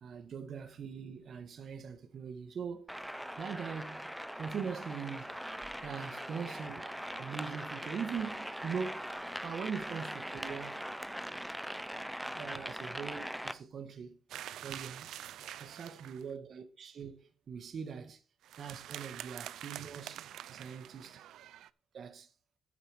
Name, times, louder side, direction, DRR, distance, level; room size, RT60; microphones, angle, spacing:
voice 1, 0.0-3.0 3.4-5.3 5.8-9.1 9.4-10.8 12.4-14.2 14.6-15.1 15.6-18.2 18.6-21.2 21.9-22.3, right 6 dB, 55° right, 1.5 m, -42 dB
sound 1, 2.9-13.5, equal, ahead, 0.7 m, -41 dB
sound 2, 14.3-16.3 18.4-21.7, right 12 dB, 80° right, 0.4 m, -46 dB
9.5 x 5.1 x 7.4 m
cardioid pair, 90°, 0 cm